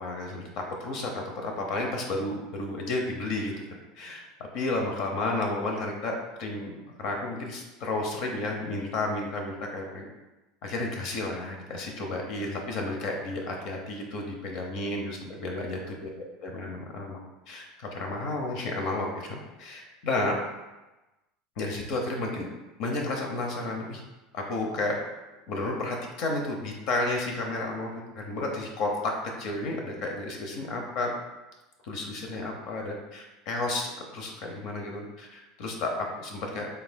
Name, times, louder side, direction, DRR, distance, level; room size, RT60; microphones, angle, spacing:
voice 1, 0.0-3.5 3.9-4.2 4.5-6.1 6.4-6.7 7.0-10.0 10.6-16.1 16.4-17.2 17.5-20.4 21.6-22.5 22.8-24.0 24.3-25.0 25.5-31.1 31.8-36.7, left 2 dB, 60° left, 1 dB, 0.7 m, -32 dB
5.5 x 3.5 x 2.2 m, 1.1 s
supercardioid pair, 135°, 0 cm